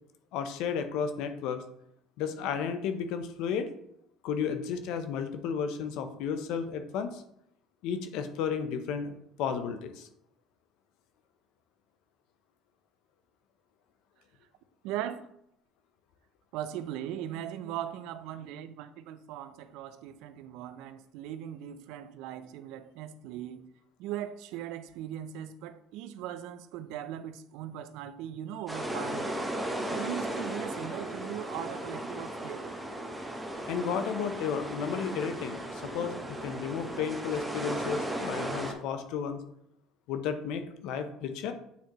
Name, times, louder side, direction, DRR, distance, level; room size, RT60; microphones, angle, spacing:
voice 1, 0.3-1.6 2.2-3.7 4.2-7.2 7.8-9.1 9.4-10.1 33.7-39.4 40.1-41.5, left 7 dB, 75° left, 0.8 m, -33 dB
voice 2, 14.8-15.3 16.5-23.7 24.0-29.3 29.9-32.7, right 11 dB, 75° right, 0.5 m, -39 dB
sound 1, 28.7-38.7, right 1 dB, 10° right, 1.3 m, -36 dB
8.3 x 4.4 x 3.1 m
supercardioid pair, 80°, 0 cm